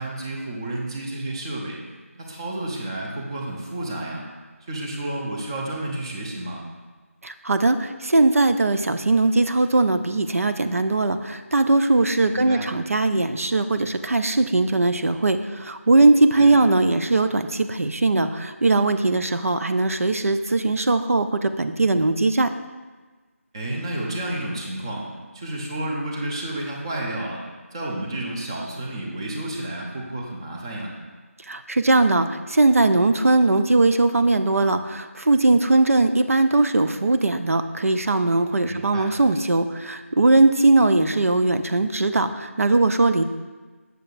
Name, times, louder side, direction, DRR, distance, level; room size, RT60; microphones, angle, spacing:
voice 1, 0.0-1.8 2.2-4.3 4.7-6.6 12.3-12.7 16.3-16.6 23.5-25.1 25.3-27.4 27.7-30.9 38.7-39.1, right 1 dB, 20° right, -1 dB, 0.7 m, -31 dB
voice 2, 7.2-22.5 31.5-43.2, right 2 dB, 75° right, 9 dB, 0.5 m, -20 dB
7.6 x 6.7 x 2.5 m, 1.3 s
figure-of-eight pair, 165°, 8 cm